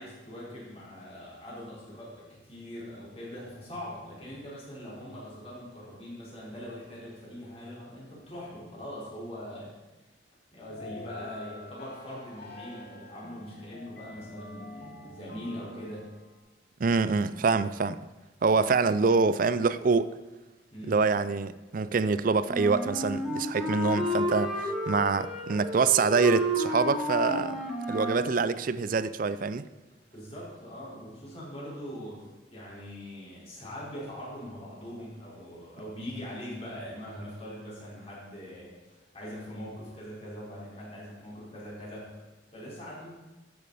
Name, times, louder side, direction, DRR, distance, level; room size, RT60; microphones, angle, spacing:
voice 1, 0.0-9.7 10.5-16.0 20.7-21.1 30.1-42.1 42.5-43.1, equal, 30° left, 4.4 m, -42 dB
sound 1, 10.7-16.4, left 2 dB, 50° left, 1.2 m, -46 dB
voice 2, 16.8-18.0 18.4-20.1 20.9-27.6 27.9-29.6, right 4 dB, 45° right, 0.4 m, -25 dB
Wind instrument woodwind instrument, 22.5-28.3, equal, ahead, 1.8 m, -31 dB
13.0 x 8.6 x 4.1 m
head